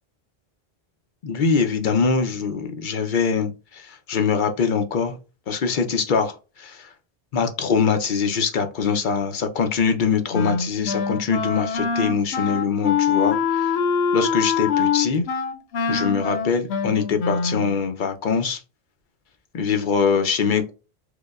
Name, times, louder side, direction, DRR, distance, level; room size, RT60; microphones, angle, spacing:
voice 1, 1.2-5.2 5.5-6.9 7.3-13.8 14.1-15.3 15.9-18.6 19.5-20.7, left 5 dB, 60° left, 7 dB, 0.7 m, -23 dB
Wind instrument woodwind instrument, 10.3-17.8, left 6 dB, 90° left, 0.9 m, -24 dB
4.8 x 2.1 x 2.3 m, 0.31 s
omnidirectional pair, 1.1 m